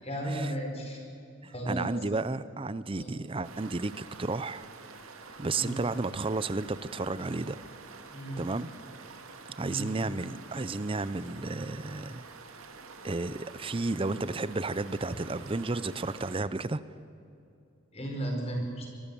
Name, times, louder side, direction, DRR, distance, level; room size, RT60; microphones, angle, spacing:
voice 1, 0.0-1.0 1.5-1.9 2.9-3.2 5.5-5.8 8.1-8.4 9.6-9.9 17.9-18.9, right 1 dB, 30° left, 2 dB, 4.6 m, -34 dB
voice 2, 1.4-4.7 5.4-7.6 8.4-8.7 9.6-12.2 13.0-16.8, right 3 dB, 25° right, 15 dB, 0.5 m, -32 dB
sound 1, 3.4-16.4, right 4 dB, 80° right, 2.1 m, -48 dB
24.5 x 20.5 x 7.0 m, 2.6 s
head